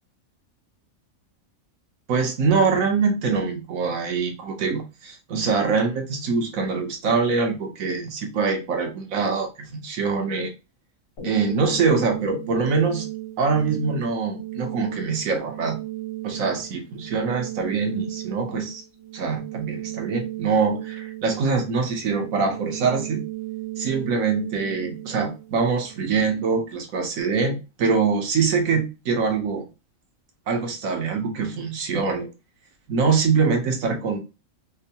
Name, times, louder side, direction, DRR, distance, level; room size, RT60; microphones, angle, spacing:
voice 1, 2.1-10.5 11.2-13.1 13.4-15.8 16.2-18.8 19.1-23.2 23.8-29.6 30.5-32.3 32.9-34.2, right 5 dB, 90° right, 4 dB, 1.3 m, -24 dB
sound 1, 11.2-26.2, right 14 dB, 70° left, 1.7 m, -36 dB
4.4 x 2.1 x 2.8 m, 0.28 s
omnidirectional pair, 1.4 m